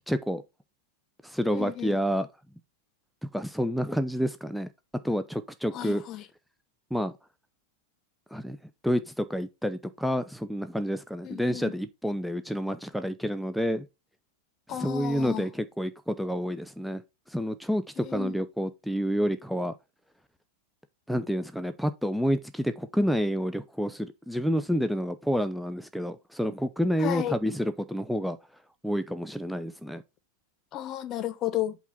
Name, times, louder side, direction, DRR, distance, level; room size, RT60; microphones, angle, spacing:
voice 1, 0.1-0.4 1.2-2.3 3.3-4.7 5.0-6.0 6.9-7.1 8.3-8.6 8.8-13.9 14.7-17.0 17.3-19.7 21.1-28.4 28.8-30.0, equal, ahead, 0.6 m, -29 dB
voice 2, 1.5-2.0 5.7-6.2 11.2-11.7 14.7-15.5 18.0-18.4 27.0-27.4 30.7-31.8, left 12 dB, 35° left, 0.9 m, -33 dB
8.2 x 3.8 x 4.4 m
figure-of-eight pair, 95°, 0 cm